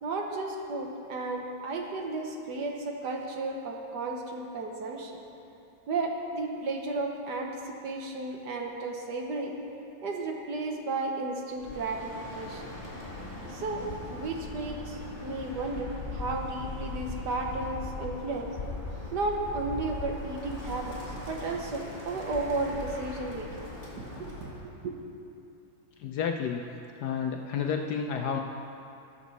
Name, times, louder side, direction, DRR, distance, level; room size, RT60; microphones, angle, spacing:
voice 1, 0.0-5.2 5.9-9.6 10.0-12.6 13.5-18.5 19.1-21.0 21.3-23.7 23.9-24.9, right 3 dB, 60° right, 1 dB, 1.5 m, -33 dB
Bird, 11.5-24.6, left 3 dB, 25° left, 2.0 m, -40 dB
voice 2, 26.0-26.6 27.0-28.4, left 7 dB, 70° left, 3 dB, 1.0 m, -30 dB
18.5 x 7.0 x 4.1 m, 2.7 s
omnidirectional pair, 2.2 m